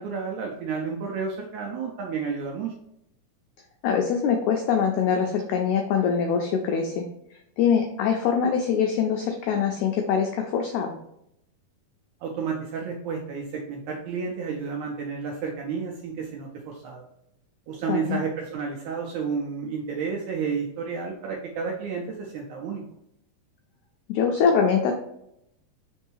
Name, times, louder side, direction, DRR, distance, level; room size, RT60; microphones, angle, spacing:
voice 1, 0.0-2.7 12.2-17.0 17.7-22.8, right 5 dB, 80° right, 0 dB, 1.7 m, -31 dB
voice 2, 3.8-7.1 7.6-11.0 17.9-18.2 24.1-24.9, left 6 dB, 90° left, 3 dB, 1.6 m, -23 dB
4.4 x 4.0 x 3.0 m, 0.78 s
omnidirectional pair, 3.9 m